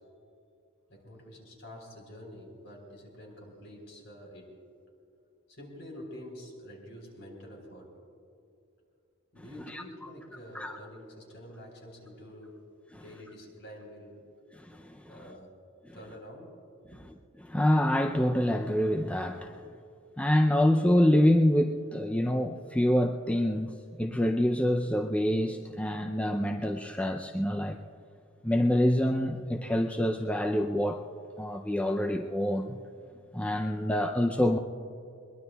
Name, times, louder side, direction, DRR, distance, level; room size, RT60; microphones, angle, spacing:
voice 1, 0.9-4.5 5.5-7.9 9.3-12.6 12.9-14.2 15.1-15.5 15.9-16.5 16.9-17.0, equal, 55° left, 1 dB, 3.9 m, -47 dB
voice 2, 14.6-15.1 17.4-19.6 20.2-27.8 28.4-31.0 31.4-32.8 33.3-34.6, left 1 dB, 5° left, 3 dB, 0.4 m, -26 dB
22.0 x 22.0 x 2.3 m, 2.6 s
head